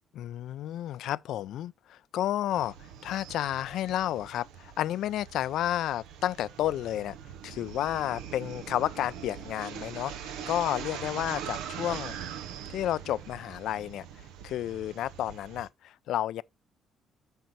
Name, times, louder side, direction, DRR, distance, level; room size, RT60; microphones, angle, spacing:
voice 1, 0.1-2.8 3.0-7.2 7.4-12.2 12.7-14.1 14.4-16.4, left 12 dB, 75° left, 0.4 m, -31 dB
sound 1, 2.5-15.7, right 9 dB, 80° right, 0.8 m, -42 dB
8.0 x 6.4 x 4.6 m
supercardioid pair, 60°, 0 cm